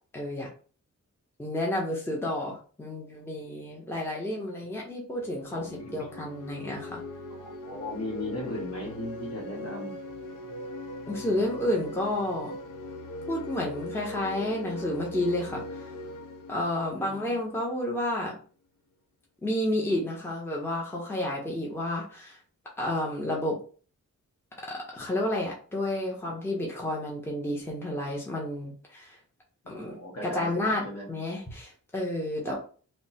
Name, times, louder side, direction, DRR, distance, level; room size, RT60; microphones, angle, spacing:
voice 1, 0.1-0.5 1.4-7.0 11.1-12.5 13.3-15.9 16.5-18.3 19.4-22.4 22.8-23.5 24.7-29.2 29.7-29.9 30.2-32.5, left 1 dB, 5° left, -2 dB, 0.7 m, -31 dB
sound 1, 5.2-17.9, left 1 dB, 75° left, 0.5 m, -40 dB
voice 2, 5.5-6.1 7.3-9.9 16.9-17.3 29.6-31.1 32.4-32.6, left 2 dB, 50° left, -1 dB, 1.3 m, -37 dB
3.3 x 2.0 x 4.0 m, 0.40 s
wide cardioid pair, 150°, 32 cm